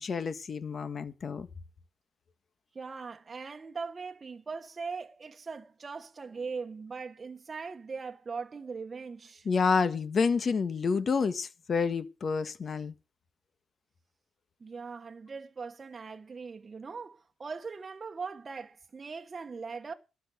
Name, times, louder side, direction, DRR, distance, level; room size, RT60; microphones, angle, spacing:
voice 1, 0.0-1.5 9.4-12.9, left 5 dB, 45° left, 1.5 m, -29 dB
voice 2, 2.7-9.5 14.6-19.9, right 5 dB, 30° right, 1.3 m, -40 dB
12.5 x 6.2 x 9.2 m
cardioid pair, 90°, 0 cm